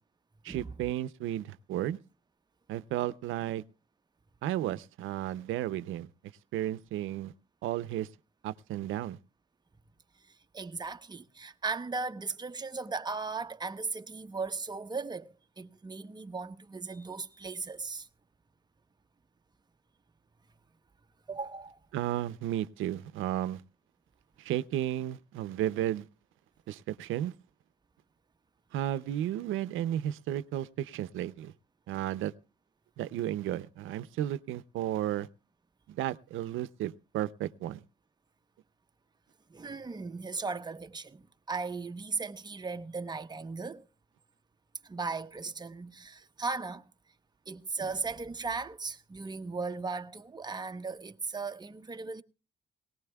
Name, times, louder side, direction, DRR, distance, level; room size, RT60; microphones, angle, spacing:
voice 1, 0.4-2.0 2.7-3.6 4.4-6.1 6.5-7.3 7.6-8.1 8.4-9.2 21.9-23.6 24.4-26.1 26.7-27.3 28.7-31.5 31.9-32.3 33.0-35.3 35.9-37.8, right 12 dB, 85° right, 0.6 m, -33 dB
voice 2, 10.3-18.1 21.3-21.8 39.5-43.8 44.8-46.8 47.5-52.2, right 4 dB, 20° right, 0.9 m, -37 dB
19.5 x 18.5 x 2.3 m
cardioid pair, 90°, 20 cm